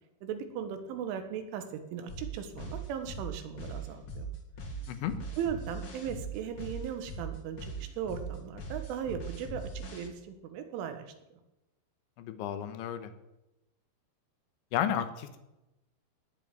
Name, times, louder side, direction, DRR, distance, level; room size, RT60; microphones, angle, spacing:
voice 1, 0.2-4.3 5.4-11.1, right 8 dB, 90° right, 8 dB, 4.0 m, -38 dB
sound 1, 2.1-10.1, right 3 dB, 40° left, 2.0 m, -40 dB
voice 2, 12.2-13.1 14.7-15.4, left 10 dB, 80° left, 10 dB, 3.4 m, -32 dB
17.5 x 7.5 x 9.3 m, 0.94 s
omnidirectional pair, 5.4 m